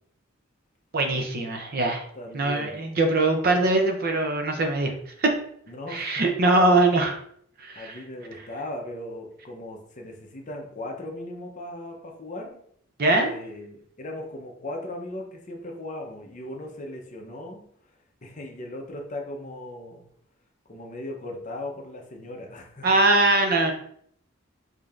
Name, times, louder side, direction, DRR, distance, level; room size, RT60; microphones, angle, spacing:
voice 1, 0.9-2.0 2.3-4.9 5.2-5.3 5.9-7.2 7.6-8.0 13.0-13.3 22.8-23.7, right 2 dB, 45° right, 4 dB, 0.6 m, -22 dB
voice 2, 2.1-2.8 5.7-6.3 7.8-12.6 13.1-17.7 18.2-20.0 20.7-22.9, left 1 dB, 35° left, 1 dB, 0.7 m, -38 dB
5.0 x 2.7 x 2.4 m, 0.65 s
head